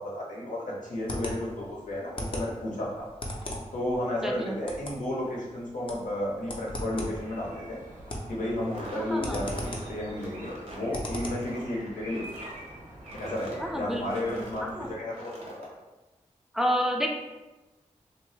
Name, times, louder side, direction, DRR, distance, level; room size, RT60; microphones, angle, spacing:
voice 1, 0.0-3.1 3.7-7.8 8.3-12.3 13.2-15.7, left 1 dB, 80° left, -4 dB, 0.8 m, -33 dB
sound 1, 0.8-11.5, equal, 45° left, 0.7 m, -39 dB
voice 2, 4.2-4.6 8.9-9.4 13.6-14.2 14.6-14.9 16.5-17.1, equal, 5° right, 0 dB, 0.5 m, -29 dB
sound 2, 7.1-14.9, right 1 dB, 85° right, 0.6 m, -47 dB
sound 3, 8.5-14.7 15.1-15.7, right 1 dB, 55° right, 0.9 m, -45 dB
2.7 x 2.2 x 3.2 m, 1.1 s
cardioid pair, 40°, 13 cm